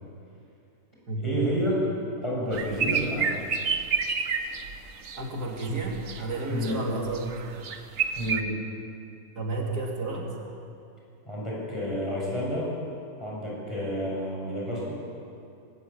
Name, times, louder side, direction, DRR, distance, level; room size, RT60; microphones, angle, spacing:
voice 1, 1.2-1.9 2.2-3.4 6.5-6.9 8.2-8.6 11.3-12.7 13.2-14.9, equal, 20° left, -5 dB, 7.3 m, -29 dB
sound 1, 2.5-5.2 5.6-6.8 7.1-8.4, right 6 dB, 60° right, 1.4 m, -29 dB
voice 2, 5.2-7.5 9.4-10.3, right 2 dB, 80° right, -1 dB, 3.3 m, -31 dB
20.5 x 18.0 x 8.8 m, 2.6 s
omnidirectional pair, 1.7 m